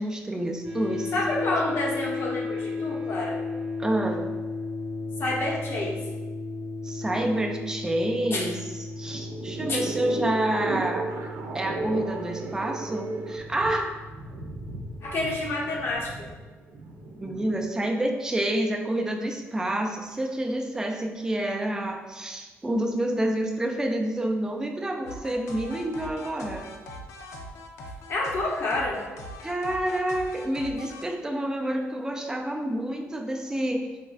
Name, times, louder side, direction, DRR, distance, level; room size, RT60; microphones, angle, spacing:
voice 1, 0.0-1.5 3.8-4.3 6.8-8.6 9.0-11.1 11.5-14.0 17.2-26.7 29.4-33.9, right 1 dB, 15° right, 2 dB, 0.4 m, -28 dB
sound 1, 0.6-15.9, left 3 dB, 35° right, 1.0 m, -35 dB
voice 2, 1.1-3.4 5.2-6.0 8.3-8.5 9.7-9.9 15.0-16.3 28.1-29.0, left 2 dB, 55° left, -2 dB, 0.8 m, -28 dB
sound 2, 8.9-17.7, right 2 dB, 75° right, 0.4 m, -34 dB
sound 3, 25.1-31.0, left 1 dB, 90° left, 0.4 m, -41 dB
4.2 x 2.3 x 2.4 m, 1.3 s
cardioid pair, 105°, 5 cm